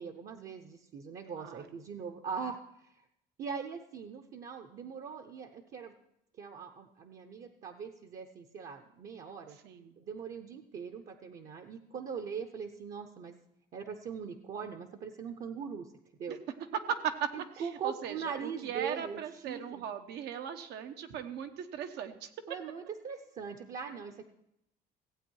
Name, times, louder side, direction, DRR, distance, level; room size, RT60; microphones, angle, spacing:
voice 1, 0.0-3.0 3.4-5.9 6.4-9.6 10.0-13.4 13.7-15.9 16.2-16.4 17.3-19.8 22.5-24.2, right 6 dB, 55° right, 6 dB, 0.9 m, -41 dB
voice 2, 1.3-1.7 9.6-9.9 16.3-16.4 16.7-17.3 17.5-22.3, right 8 dB, 80° right, 7 dB, 1.0 m, -38 dB
16.0 x 8.3 x 4.7 m, 0.81 s
cardioid pair, 110°, 17 cm